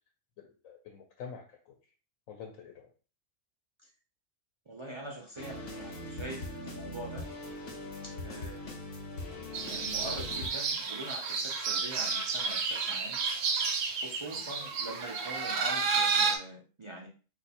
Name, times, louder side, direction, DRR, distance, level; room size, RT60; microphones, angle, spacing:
voice 1, 0.4-1.8 2.3-2.9 8.7-8.8 14.4-14.8, left 6 dB, 85° left, 2 dB, 1.0 m, -48 dB
voice 2, 4.7-7.3 8.0-8.7 9.6-13.2 14.0-17.1, right 1 dB, 45° right, -2 dB, 0.4 m, -43 dB
sound 1, 5.4-10.5, left 2 dB, 50° left, 0.9 m, -41 dB
sound 2, 9.5-16.4, right 5 dB, 75° right, 1.0 m, -31 dB
2.6 x 2.5 x 4.1 m, 0.37 s
omnidirectional pair, 1.4 m